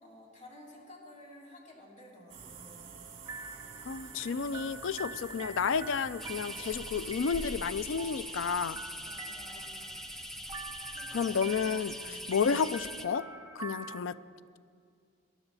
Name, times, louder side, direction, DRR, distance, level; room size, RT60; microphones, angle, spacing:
voice 1, 0.0-2.9 9.0-9.8 10.4-10.5 10.9-11.3 12.0-12.2, left 1 dB, 35° left, -4 dB, 3.1 m, -53 dB
sound 1, 2.3-8.7, right 5 dB, 60° right, 2.1 m, -50 dB
sound 2, 3.2-14.0, right 2 dB, 20° right, 0.9 m, -46 dB
voice 2, 3.8-8.8 11.1-13.3 13.6-14.2, left 6 dB, 70° left, 15 dB, 0.4 m, -31 dB
sound 3, 6.2-13.1, equal, ahead, 0.6 m, -42 dB
19.5 x 11.5 x 4.1 m, 2.2 s
head